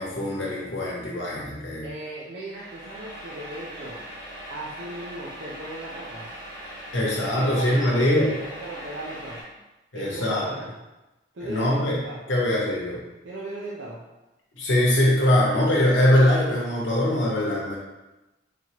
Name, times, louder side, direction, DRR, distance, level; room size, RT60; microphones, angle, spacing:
voice 1, 0.0-1.9 6.9-8.3 9.9-10.5 11.4-13.0 14.5-17.8, left 1 dB, 90° left, -5 dB, 1.0 m, -22 dB
voice 2, 1.8-4.0 4.5-6.3 7.4-9.4 9.9-10.7 11.3-12.2 13.2-14.0, right 1 dB, 75° right, -6 dB, 0.6 m, -37 dB
sound 1, 2.5-9.4, equal, 25° right, 1.3 m, -40 dB
4.0 x 3.0 x 2.9 m, 1.0 s
head